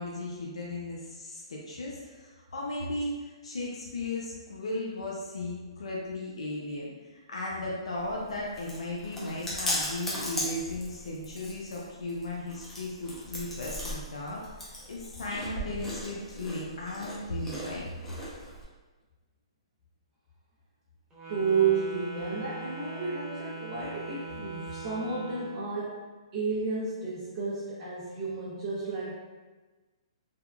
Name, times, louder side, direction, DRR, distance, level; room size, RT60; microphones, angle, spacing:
voice 1, 0.0-17.9, left 2 dB, 80° left, -3 dB, 0.5 m, -36 dB
Chewing mastication, 8.0-18.6, equal, 10° left, 0.7 m, -38 dB
Wind instrument woodwind instrument, 21.1-25.7, right 3 dB, 15° right, 1.0 m, -41 dB
voice 2, 21.3-26.0 26.3-29.1, right 5 dB, 45° right, -9 dB, 0.7 m, -31 dB
3.4 x 2.2 x 2.3 m, 1.3 s
hypercardioid pair, 145°, 3 cm